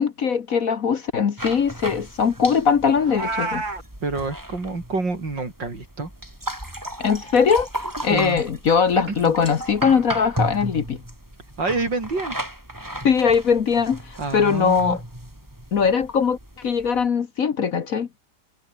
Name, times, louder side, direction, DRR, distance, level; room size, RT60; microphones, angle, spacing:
voice 1, 0.0-3.6 7.0-11.0 13.0-15.0 15.7-18.1, left 6 dB, 50° left, 1.5 m, -21 dB
sound 1, 1.4-17.1, right 1 dB, 10° right, 4.6 m, -35 dB
Meow, 3.0-3.8, right 3 dB, 85° right, 5.9 m, -28 dB
voice 2, 4.0-6.1 8.0-8.4 9.0-9.3 11.6-12.4 14.2-15.0, right 3 dB, 70° right, 5.6 m, -27 dB
omnidirectional pair, 2.0 m